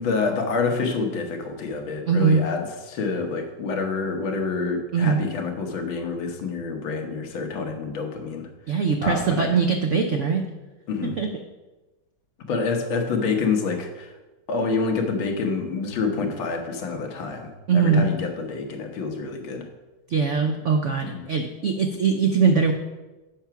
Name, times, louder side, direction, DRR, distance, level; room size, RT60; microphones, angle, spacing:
voice 1, 0.0-8.5 9.0-9.5 10.9-11.1 12.5-14.2 14.5-19.7 21.1-21.2, left 4 dB, 90° left, 4 dB, 1.9 m, -27 dB
voice 2, 2.1-2.4 4.9-5.2 8.7-10.5 11.0-11.4 17.7-18.1 20.1-22.7, right 5 dB, 75° right, 5 dB, 0.6 m, -21 dB
8.0 x 5.9 x 5.7 m, 1.1 s
omnidirectional pair, 2.1 m